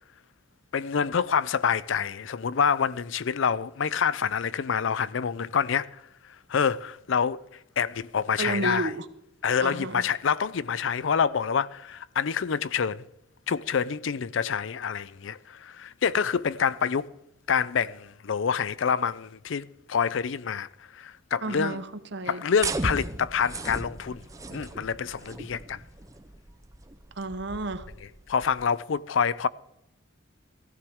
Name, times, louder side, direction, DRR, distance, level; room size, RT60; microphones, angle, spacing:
voice 1, 0.7-6.0 6.5-7.4 7.8-8.9 9.4-13.0 13.5-17.1 17.5-21.8 22.3-24.2 24.5-25.8 28.3-29.5, left 6 dB, 70° left, 0.5 m, -27 dB
voice 2, 8.4-9.1 9.6-10.1 21.4-22.4 27.2-27.9, right 2 dB, 60° right, 0.9 m, -31 dB
sound 1, 22.6-28.6, right 2 dB, 15° right, 0.6 m, -37 dB
16.0 x 14.5 x 3.6 m
head